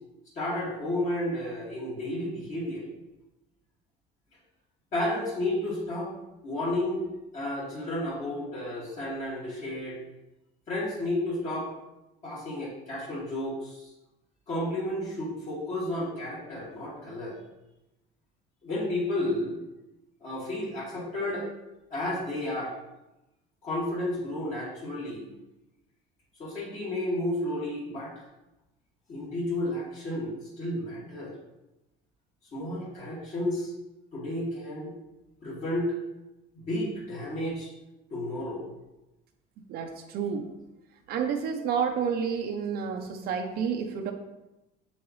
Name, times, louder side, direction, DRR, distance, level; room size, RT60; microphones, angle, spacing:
voice 1, 0.3-2.8 4.9-6.1 6.4-7.0 7.3-10.0 10.7-11.7 12.2-13.9 14.5-17.4 18.6-19.6 20.2-21.5 21.9-22.8 23.6-25.3 26.4-28.2 29.1-31.4 32.5-33.7 34.1-34.9 35.4-36.0 36.5-37.7 38.1-38.6, left 1 dB, 40° left, -7 dB, 2.4 m, -32 dB
voice 2, 39.7-40.5 41.1-44.1, right 6 dB, 55° right, 4 dB, 0.7 m, -30 dB
7.2 x 7.2 x 3.2 m, 0.96 s
cardioid pair, 160°, 20 cm